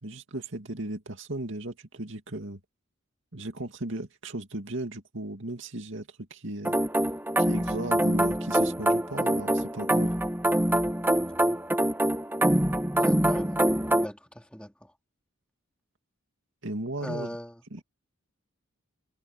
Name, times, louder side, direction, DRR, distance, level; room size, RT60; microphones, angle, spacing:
voice 1, 0.0-2.6 3.3-6.8 7.4-10.1 16.6-17.4 17.7-17.8, right 1 dB, 65° right, 2.6 m, -36 dB
sound 1, 6.6-14.1, right 1 dB, 10° right, 2.3 m, -25 dB
voice 2, 13.0-13.6 14.0-14.9 17.0-17.5, equal, 5° left, 4.1 m, -38 dB
head